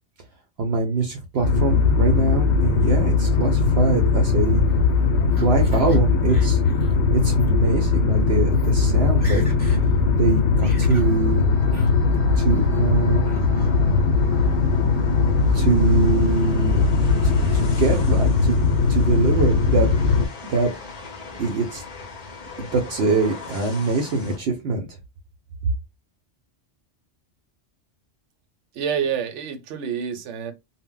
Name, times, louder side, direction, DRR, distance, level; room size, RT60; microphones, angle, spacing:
voice 1, 0.6-4.6 5.4-6.6 7.1-9.4 10.2-11.4 12.4-13.4 15.5-16.8 17.2-18.6 18.9-19.9 20.5-20.7 21.4-21.8 22.6-24.9, right 3 dB, 65° right, 0.8 m, -23 dB
sound 1, 1.4-20.3, left 4 dB, 80° left, 0.9 m, -19 dB
Laughter, 4.4-6.0 6.3-7.0 7.3-7.5 8.2-8.3 8.5-8.8 9.0-9.8 10.2-11.1 11.7-11.9 12.3-12.8 13.2-13.7, equal, 10° left, 0.9 m, -43 dB
sound 2, 10.9-24.4, left 3 dB, 45° left, 0.6 m, -39 dB
voice 2, 28.7-30.5, right 7 dB, 90° right, 0.9 m, -27 dB
2.1 x 2.1 x 3.6 m
omnidirectional pair, 1.2 m